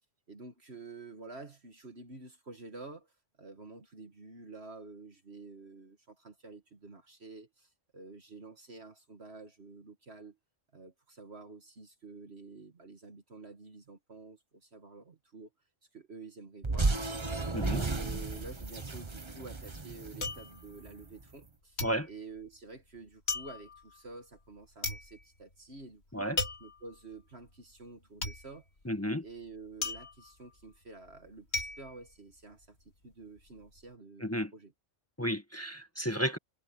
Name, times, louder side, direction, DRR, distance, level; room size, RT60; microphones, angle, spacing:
voice 1, 0.3-3.1 3.4-10.4 10.7-15.5 15.9-17.4 17.7-21.8 22.1-26.2 26.6-28.7 29.2-32.8 33.0-34.7, right 3 dB, 55° right, 2.1 m, -49 dB
sound 1, 16.6-21.0, right 3 dB, 25° right, 1.2 m, -33 dB
sound 2, 20.2-21.5 21.8-32.9 33.2-33.8, left 3 dB, 60° left, 2.8 m, -39 dB
voice 2, 28.8-29.2 34.2-34.5 35.2-36.4, equal, 10° left, 1.5 m, -32 dB
omnidirectional pair, 1.3 m